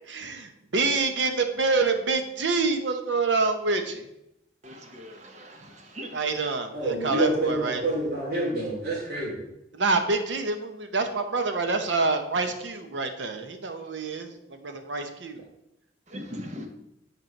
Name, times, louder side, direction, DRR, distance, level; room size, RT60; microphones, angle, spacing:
voice 1, 0.1-4.1 6.1-7.8 9.7-15.5, right 3 dB, 90° right, 6 dB, 0.9 m, -27 dB
voice 2, 4.6-6.5 16.1-16.7, equal, 40° right, 3 dB, 1.1 m, -40 dB
voice 3, 6.7-9.4, right 1 dB, 60° right, -4 dB, 2.9 m, -27 dB
7.9 x 4.5 x 4.5 m, 0.84 s
head